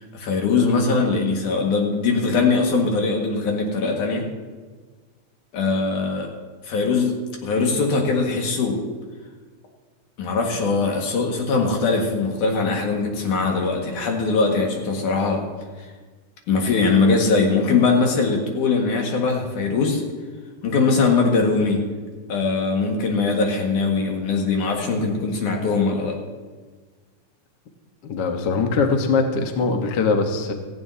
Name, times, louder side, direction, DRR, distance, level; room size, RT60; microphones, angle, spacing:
voice 1, 0.1-4.3 5.5-6.3 6.6-8.8 10.2-15.4 16.5-20.0 20.6-21.8 22.3-26.2, left 4 dB, 75° left, 1 dB, 3.2 m, -21 dB
voice 2, 28.1-30.5, left 4 dB, 60° left, 4 dB, 1.1 m, -21 dB
17.0 x 14.5 x 2.8 m, 1.4 s
omnidirectional pair, 3.6 m